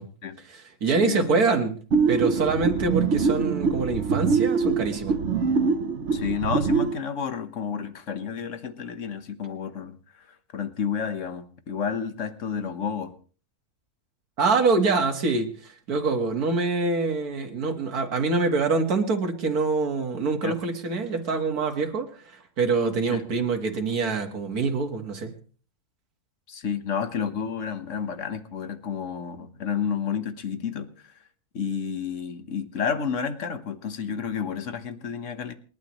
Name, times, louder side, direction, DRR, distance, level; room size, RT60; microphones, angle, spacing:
voice 1, 0.4-1.8 2.1-5.2 14.4-25.3, right 4 dB, 85° right, 5 dB, 2.2 m, -25 dB
voice 2, 1.0-1.5 6.1-10.0 10.5-13.1 20.4-20.6 23.1-23.2 26.5-31.1 31.5-35.5, left 7 dB, 55° left, 10 dB, 1.6 m, -30 dB
sound 1, 1.9-7.0, right 5 dB, 55° right, 1.3 m, -24 dB
28.5 x 11.0 x 3.1 m, 0.40 s
omnidirectional pair, 1.6 m